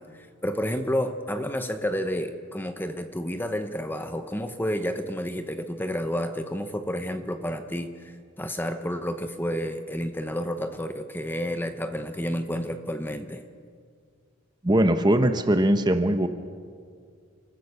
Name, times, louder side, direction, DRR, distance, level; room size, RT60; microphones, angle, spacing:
voice 1, 0.0-13.4, equal, 10° left, 8 dB, 0.8 m, -30 dB
voice 2, 14.6-16.3, right 1 dB, 20° right, 8 dB, 0.8 m, -21 dB
29.5 x 14.5 x 6.8 m, 2.1 s
head